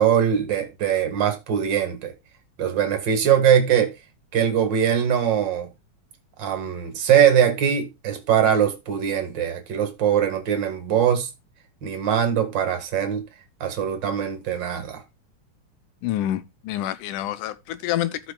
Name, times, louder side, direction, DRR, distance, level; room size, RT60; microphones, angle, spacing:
voice 1, 0.0-2.1 2.6-3.9 4.3-5.7 6.4-11.3 11.8-13.2 13.6-15.0, right 9 dB, 45° right, 2.0 m, -21 dB
voice 2, 16.0-18.2, left 13 dB, 85° left, 2.3 m, -27 dB
14.5 x 6.0 x 2.3 m
omnidirectional pair, 3.5 m